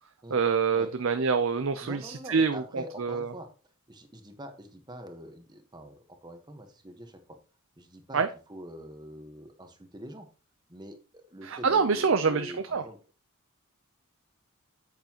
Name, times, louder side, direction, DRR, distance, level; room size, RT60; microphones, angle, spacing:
voice 1, 0.3-3.3 8.1-8.3 11.4-12.8, right 5 dB, 60° right, 9 dB, 0.6 m, -26 dB
voice 2, 1.8-3.5 3.9-7.2 7.8-8.2 8.5-10.3 10.7-13.0, equal, 20° right, 5 dB, 1.3 m, -45 dB
9.0 x 8.0 x 3.0 m, 0.35 s
head